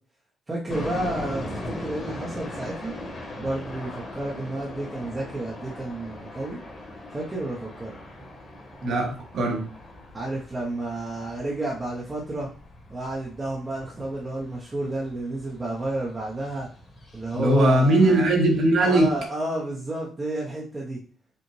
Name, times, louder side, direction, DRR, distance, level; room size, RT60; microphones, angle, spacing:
voice 1, 0.5-2.9 3.4-6.6 7.1-8.0 10.1-12.5 12.9-16.7 17.1-18.3 18.8-21.0, right 2 dB, 20° right, -4 dB, 0.9 m, -31 dB
sound 1, 0.7-19.2, left 1 dB, 35° left, 1.6 m, -40 dB
voice 2, 8.8-9.6 17.3-19.1, right 1 dB, 65° right, 1 dB, 1.4 m, -20 dB
5.1 x 2.4 x 3.2 m, 0.41 s
cardioid pair, 90°, 0 cm